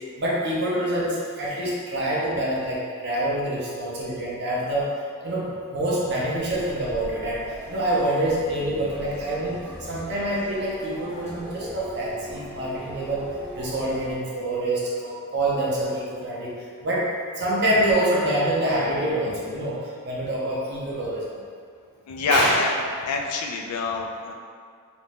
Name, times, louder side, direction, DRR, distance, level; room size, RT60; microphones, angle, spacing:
voice 1, 0.2-4.9 5.2-9.6 9.9-13.2 13.5-16.5 16.8-17.1 17.4-21.4 22.3-22.6, right 1 dB, 50° right, -5 dB, 0.6 m, -26 dB
sound 1, 6.3-14.1, equal, 10° left, 0.4 m, -40 dB
voice 2, 22.1-22.7 23.0-24.3, left 4 dB, 85° left, 2 dB, 0.3 m, -25 dB
2.5 x 2.1 x 3.2 m, 2.1 s
head